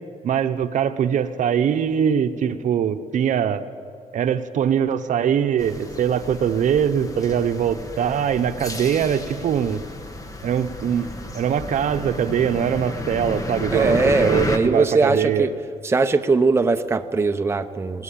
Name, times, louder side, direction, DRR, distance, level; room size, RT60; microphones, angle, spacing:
voice 1, 0.2-3.6 4.1-9.8 10.4-11.1 11.3-15.5, right 8 dB, 70° right, 9 dB, 1.0 m, -22 dB
sound 1, 5.6-14.6, left 2 dB, 25° left, 1.6 m, -32 dB
voice 2, 13.7-15.5 15.8-18.0, right 3 dB, 20° right, 7 dB, 0.8 m, -20 dB
20.5 x 18.0 x 8.7 m, 2.3 s
cardioid pair, 135°, 14 cm